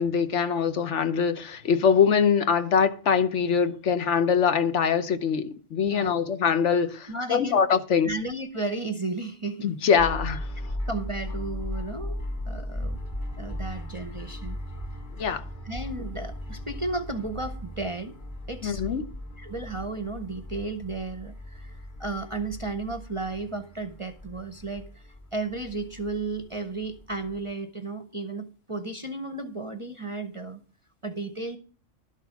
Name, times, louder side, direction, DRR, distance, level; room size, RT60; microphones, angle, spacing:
voice 1, 0.0-8.1 9.6-10.5 15.2-15.4 18.6-19.1, left 6 dB, 70° left, 1.1 m, -23 dB
voice 2, 5.8-6.2 7.1-7.7 8.0-9.8 10.9-12.2 12.5-13.0 13.4-14.6 15.6-18.2 18.5-18.8 19.4-25.0 25.3-30.6 31.0-31.6, right 3 dB, 35° right, 0.6 m, -34 dB
sound 1, 10.0-27.5, left 1 dB, 40° left, 1.9 m, -37 dB
12.0 x 6.5 x 5.8 m
omnidirectional pair, 1.3 m